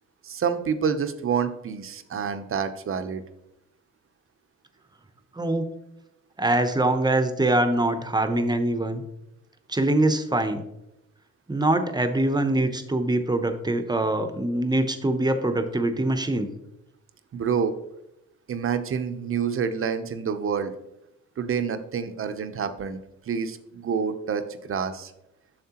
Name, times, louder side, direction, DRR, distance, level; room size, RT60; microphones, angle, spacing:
voice 1, 0.2-3.2 17.3-17.7 18.5-20.7 21.4-23.0 23.3-25.1, right 6 dB, 45° right, 9 dB, 0.7 m, -28 dB
voice 2, 6.4-9.0 9.7-10.6 11.5-16.5, right 1 dB, 15° right, 8 dB, 0.8 m, -23 dB
7.4 x 6.5 x 2.9 m, 0.85 s
cardioid pair, 90°, 30 cm